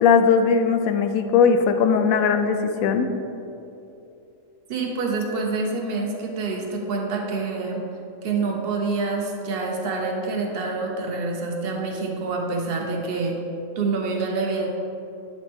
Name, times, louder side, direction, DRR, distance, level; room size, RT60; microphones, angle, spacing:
voice 1, 0.0-3.1, left 6 dB, 80° left, 7 dB, 1.0 m, -19 dB
voice 2, 4.7-7.8 8.2-13.4 13.8-14.7, right 3 dB, 50° right, 0 dB, 1.1 m, -27 dB
10.5 x 4.3 x 3.5 m, 2.8 s
omnidirectional pair, 1.4 m